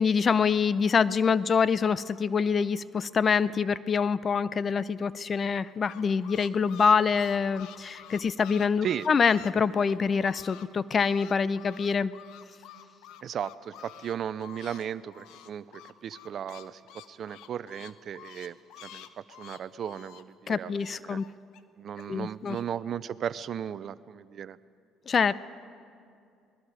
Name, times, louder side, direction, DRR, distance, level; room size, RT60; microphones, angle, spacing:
voice 1, 0.0-12.1 20.5-21.2 22.1-22.6 25.1-25.3, left 6 dB, 40° left, 17 dB, 0.6 m, -25 dB
sound 1, 5.5-10.7 10.9-14.9 15.1-21.6 22.0-22.6, left 11 dB, 75° left, 0.9 m, -49 dB
voice 2, 13.2-16.8 17.1-18.6 18.8-21.2 21.8-24.6, right 9 dB, 55° right, 17 dB, 0.5 m, -36 dB
28.0 x 20.0 x 5.0 m, 2.4 s
supercardioid pair, 75°, 0 cm